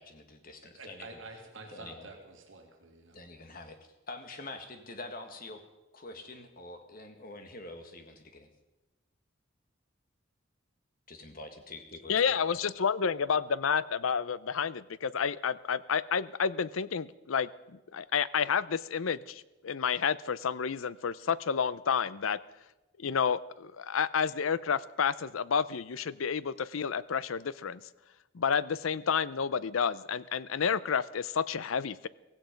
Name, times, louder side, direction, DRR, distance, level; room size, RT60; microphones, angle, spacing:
voice 1, 0.0-1.2 1.7-2.1 3.1-5.6 5.9-8.5 11.1-12.3, left 2 dB, 45° left, 6 dB, 1.8 m, -46 dB
voice 2, 0.6-3.2, right 2 dB, 70° right, 2 dB, 2.5 m, -48 dB
voice 3, 12.1-22.4 23.0-27.8 28.3-32.1, left 6 dB, 85° left, 18 dB, 0.6 m, -30 dB
16.5 x 16.0 x 5.2 m, 1.0 s
head